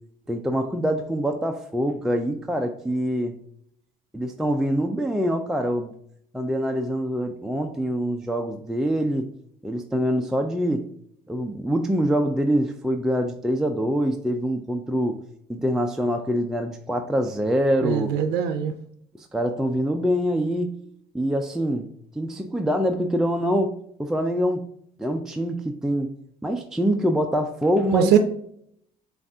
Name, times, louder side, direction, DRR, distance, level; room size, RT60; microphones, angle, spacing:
voice 1, 0.3-3.3 4.1-5.9 6.3-9.3 9.6-10.9 11.3-15.2 15.5-18.2 19.2-20.8 21.1-21.9 22.2-24.7 25.0-26.1 26.4-28.2, equal, 5° right, 4 dB, 0.4 m, -25 dB
voice 2, 17.8-18.7 27.9-28.2, right 9 dB, 80° right, 8 dB, 0.4 m, -21 dB
7.0 x 2.4 x 2.6 m, 0.69 s
cardioid pair, 110°, 17 cm